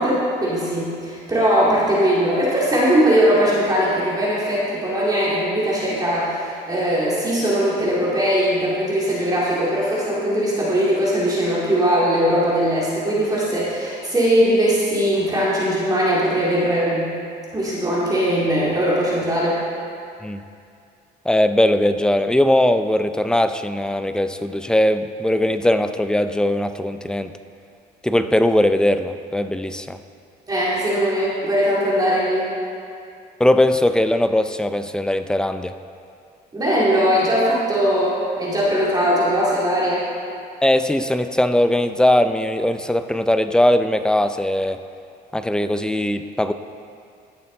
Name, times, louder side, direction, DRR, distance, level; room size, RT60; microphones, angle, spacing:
voice 1, 0.0-17.1 17.5-19.6 30.5-32.5 36.5-40.0, equal, 20° right, -7 dB, 2.4 m, -20 dB
voice 2, 21.3-27.3 28.0-30.0 33.4-35.7 40.6-44.8 45.3-46.5, left 1 dB, 5° left, 10 dB, 0.4 m, -19 dB
15.0 x 6.8 x 3.9 m, 2.4 s
cardioid pair, 110°, 17 cm